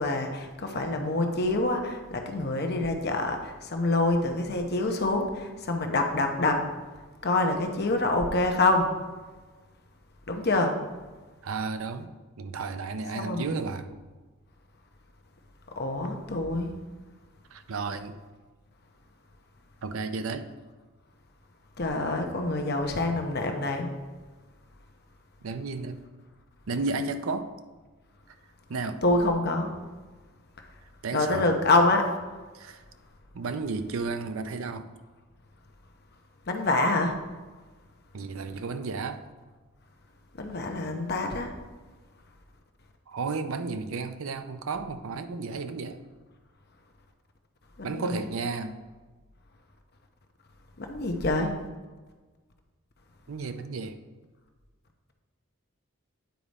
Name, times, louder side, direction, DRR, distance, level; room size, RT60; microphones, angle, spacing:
voice 1, 0.0-6.6 7.2-8.9 10.3-10.7 13.1-13.6 15.8-16.7 21.8-23.9 29.0-29.7 31.1-32.0 36.5-37.1 40.4-41.5 47.8-48.3 50.8-51.5, left 2 dB, 50° left, 4 dB, 0.8 m, -26 dB
voice 2, 11.4-13.9 17.5-18.2 19.8-20.5 25.4-26.0 26.7-27.5 28.7-29.0 31.0-31.5 32.5-32.8 33.3-34.9 38.1-39.3 43.1-46.0 47.8-48.8 53.3-54.0, right 4 dB, 75° right, 10 dB, 0.5 m, -33 dB
9.3 x 4.9 x 4.1 m, 1.3 s
head